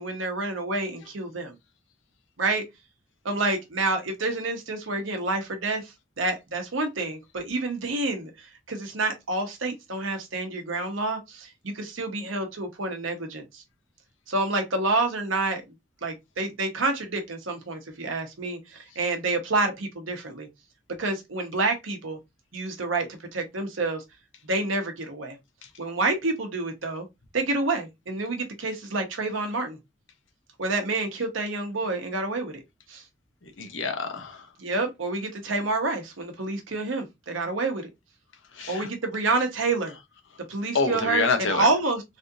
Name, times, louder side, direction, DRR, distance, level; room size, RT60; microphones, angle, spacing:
voice 1, 0.0-1.5 2.4-2.7 3.2-13.6 14.3-15.6 16.0-20.5 21.0-22.2 22.5-24.0 24.5-25.4 25.8-27.1 27.3-29.8 30.6-32.6 32.9-33.0 34.6-37.9 38.7-39.9 40.5-42.0, right 3 dB, 90° right, 0.9 m, -28 dB
voice 2, 33.4-34.5 38.5-38.9 40.7-41.7, left 4 dB, 80° left, 0.8 m, -27 dB
3.4 x 2.5 x 2.7 m
head